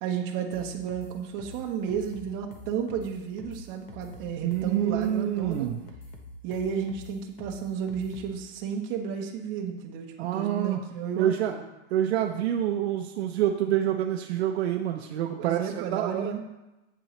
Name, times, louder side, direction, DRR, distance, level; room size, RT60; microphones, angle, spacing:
voice 1, 0.0-5.8 6.4-11.6 15.4-16.4, right 7 dB, 30° right, 2 dB, 1.1 m, -32 dB
sound 1, 0.5-8.4, left 2 dB, 40° left, 1.0 m, -45 dB
voice 2, 4.4-5.8 10.2-10.8 11.2-11.6 11.9-16.3, right 11 dB, 60° right, 4 dB, 0.7 m, -27 dB
7.9 x 7.5 x 3.2 m, 1.0 s
supercardioid pair, 160°, 36 cm